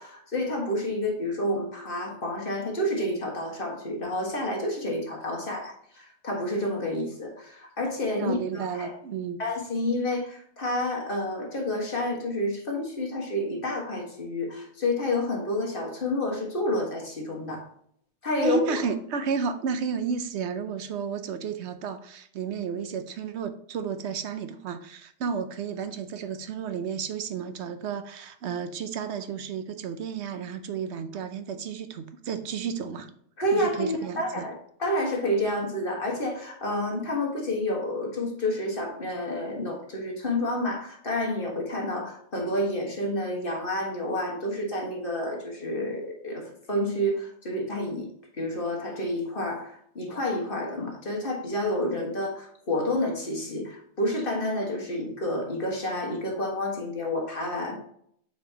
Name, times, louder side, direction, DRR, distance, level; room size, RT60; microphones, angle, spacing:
voice 1, 0.0-9.0 9.4-17.6 18.2-18.8 33.4-48.1 48.4-57.8, left 1 dB, 50° left, 1.7 m, -29 dB
voice 2, 8.2-9.4 18.4-33.1 33.5-34.5, right 6 dB, 75° right, 0.9 m, -32 dB
7.9 x 4.5 x 2.8 m
omnidirectional pair, 1.2 m